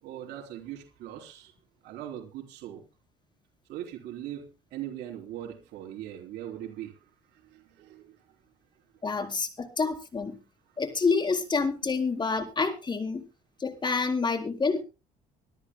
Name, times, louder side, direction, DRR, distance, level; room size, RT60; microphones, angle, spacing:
voice 1, 0.0-1.5 1.8-2.8 3.7-6.9 7.3-8.2, right 11 dB, 80° right, 0 dB, 3.5 m, -40 dB
voice 2, 9.0-10.4 10.8-13.2 13.6-14.8, left 4 dB, 25° left, 5 dB, 3.9 m, -28 dB
25.5 x 13.0 x 2.2 m, 0.31 s
cardioid pair, 110°, 17 cm